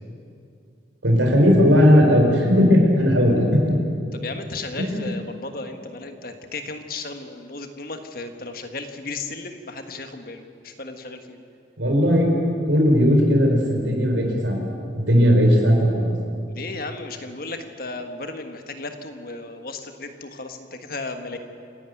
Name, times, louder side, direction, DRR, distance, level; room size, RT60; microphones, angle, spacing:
voice 1, 1.0-3.6 4.8-5.1 11.8-12.4 12.6-14.6 14.9-16.1, equal, 85° right, 1 dB, 4.6 m, -17 dB
voice 2, 4.1-11.4 16.5-21.4, left 3 dB, 50° left, 6 dB, 1.5 m, -35 dB
27.5 x 12.0 x 9.2 m, 2.4 s
head